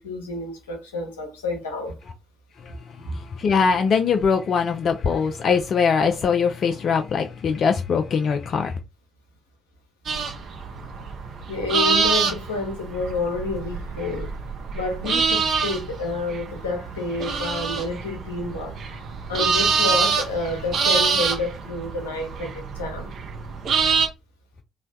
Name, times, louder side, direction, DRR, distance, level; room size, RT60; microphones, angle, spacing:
voice 1, 0.0-2.0 3.0-3.2 11.5-14.3 14.7-23.1, left 2 dB, 75° left, 0.7 m, -29 dB
voice 2, 3.4-8.7, left 6 dB, 50° left, 0.3 m, -21 dB
sound 1, 10.1-24.1, right 5 dB, 55° right, 0.6 m, -26 dB
3.1 x 2.2 x 2.6 m
figure-of-eight pair, 40°, 0 cm